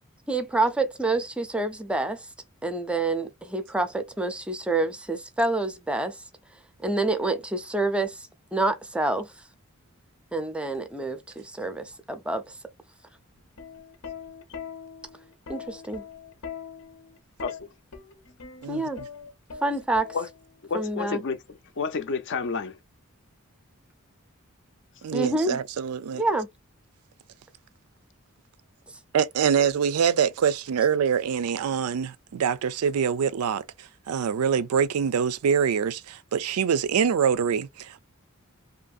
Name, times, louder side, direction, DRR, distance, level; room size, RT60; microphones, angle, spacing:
voice 1, 0.3-2.3 2.6-6.2 6.8-9.3 10.3-12.6 15.5-16.0 18.7-19.0 19.6-20.1 20.7-21.2 25.1-25.6 26.2-26.5, right 2 dB, 5° right, 0.4 m, -27 dB
Plucked string instrument, 13.4-20.6 21.7-22.0, left 7 dB, 85° left, 0.8 m, -41 dB
voice 2, 20.7-21.4 21.8-22.8, left 5 dB, 55° left, 0.5 m, -29 dB
voice 3, 25.0-26.2 29.1-38.0, right 7 dB, 90° right, 0.4 m, -25 dB
2.8 x 2.5 x 2.4 m
head